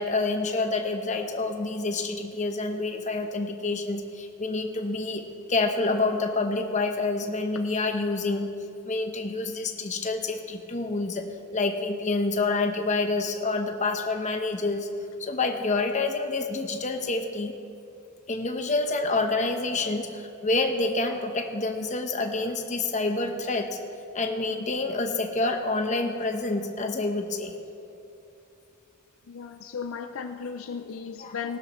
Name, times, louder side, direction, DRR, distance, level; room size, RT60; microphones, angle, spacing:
voice 1, 0.0-5.2 5.5-8.6 8.9-11.3 11.5-14.9 15.2-17.5 18.3-23.8 24.1-27.5 31.2-31.4, left 3 dB, 35° left, 5 dB, 0.9 m, -27 dB
voice 2, 29.3-31.6, left 6 dB, 65° left, 7 dB, 0.5 m, -35 dB
19.0 x 12.0 x 3.1 m, 2.7 s
head